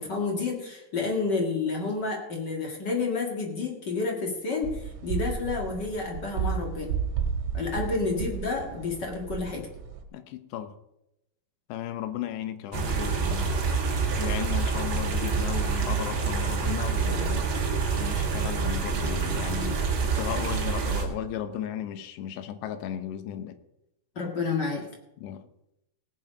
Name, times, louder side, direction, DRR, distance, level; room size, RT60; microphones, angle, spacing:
voice 1, 0.0-6.9 7.5-9.7 24.1-24.9, left 4 dB, 40° left, 0 dB, 1.6 m, -30 dB
sound 1, 4.6-10.0, right 7 dB, 80° right, 3.3 m, -33 dB
voice 2, 7.7-8.1 10.1-10.8 11.7-13.6 14.2-17.5 18.0-23.6 25.2-25.4, left 10 dB, 85° left, 11 dB, 3.0 m, -35 dB
sound 2, 12.7-21.0, right 5 dB, 50° right, 1.6 m, -27 dB
18.0 x 7.6 x 5.2 m, 0.86 s
omnidirectional pair, 4.8 m